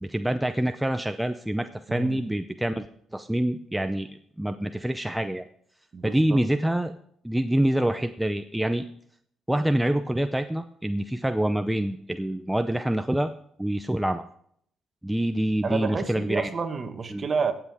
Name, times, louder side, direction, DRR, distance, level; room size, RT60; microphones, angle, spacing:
voice 1, 0.0-2.9 3.1-4.1 4.4-5.4 6.0-6.9 7.2-8.8 9.5-13.3 13.6-14.2 15.0-16.5 17.1-17.3, right 1 dB, 5° right, 8 dB, 0.6 m, -26 dB
voice 2, 1.9-2.2 5.9-6.4 15.6-17.5, right 5 dB, 40° right, 7 dB, 1.5 m, -29 dB
18.0 x 7.7 x 3.6 m, 0.64 s
cardioid pair, 90°, 0 cm